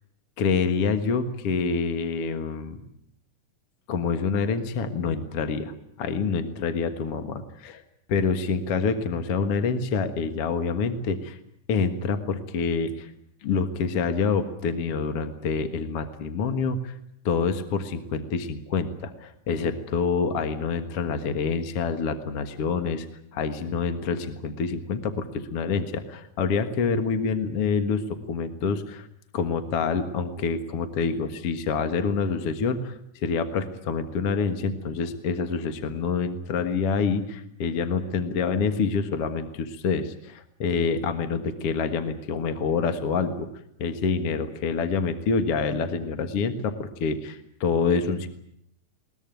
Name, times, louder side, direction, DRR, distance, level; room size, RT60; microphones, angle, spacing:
voice 1, 0.4-2.8 3.9-5.7 6.0-7.8 8.1-11.4 11.7-13.1 13.4-16.9 17.3-23.1 23.3-29.1 29.3-43.5 43.8-48.3, left 5 dB, 50° left, 8 dB, 2.2 m, -27 dB
21.5 x 21.0 x 9.2 m, 0.73 s
omnidirectional pair, 3.8 m